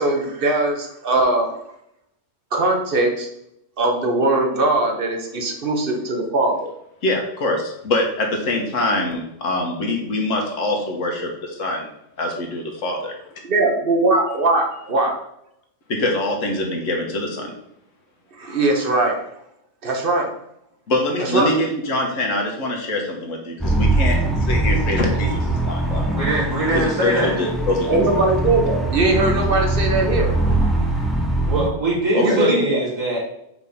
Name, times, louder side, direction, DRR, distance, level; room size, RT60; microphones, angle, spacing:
voice 1, 0.0-1.6 2.5-3.3 3.8-6.7 13.4-15.1 18.4-19.2 19.8-20.3 21.2-21.5 27.9-31.1 32.2-32.8, right 2 dB, 45° right, 2 dB, 1.1 m, -20 dB
voice 2, 7.0-11.9 12.2-13.1 15.9-17.5 20.9-26.1 26.7-28.0 32.1-32.4, left 1 dB, 70° left, 1 dB, 1.5 m, -24 dB
Undead Pulse, 23.6-31.7, right 2 dB, ahead, 0.5 m, -22 dB
voice 3, 26.1-27.4 31.5-33.2, right 1 dB, 70° right, -6 dB, 2.3 m, -22 dB
4.8 x 3.6 x 5.5 m, 0.79 s
omnidirectional pair, 1.4 m